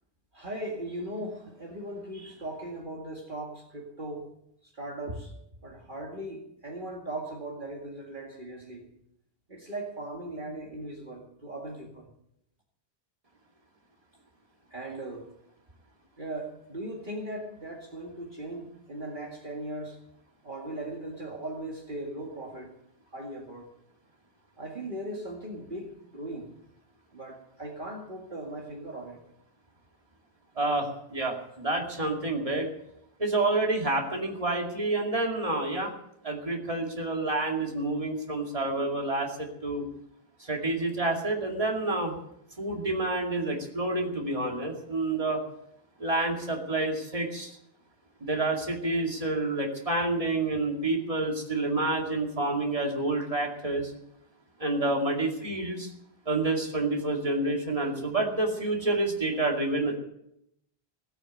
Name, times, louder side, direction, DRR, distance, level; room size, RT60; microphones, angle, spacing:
voice 1, 0.3-4.3 4.6-5.3 5.6-8.9 9.5-12.1 14.7-15.3 16.2-20.0 20.4-22.7 23.1-23.7 24.6-26.5 27.1-29.2, right 1 dB, 50° right, -1 dB, 2.2 m, -38 dB
voice 2, 30.6-32.7 33.2-35.9 36.2-39.8 40.4-42.1 42.6-45.4 46.0-47.5 48.2-53.9 54.6-55.9 56.3-60.0, right 2 dB, 30° right, 1 dB, 2.5 m, -28 dB
17.5 x 8.6 x 7.9 m, 0.76 s
omnidirectional pair, 1.1 m